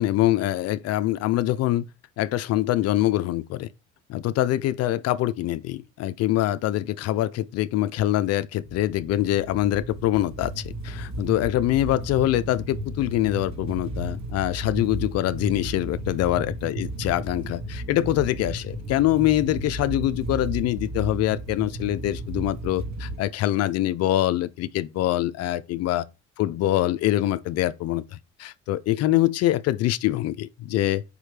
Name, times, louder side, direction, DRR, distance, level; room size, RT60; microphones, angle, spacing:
voice 1, 0.0-1.8 2.2-3.7 4.1-26.1 26.4-31.0, left 14 dB, 45° left, 0.4 m, -24 dB
sound 1, 8.6-23.2, right 1 dB, 50° right, 1.2 m, -34 dB
5.2 x 3.1 x 3.2 m
hypercardioid pair, 60°, 37 cm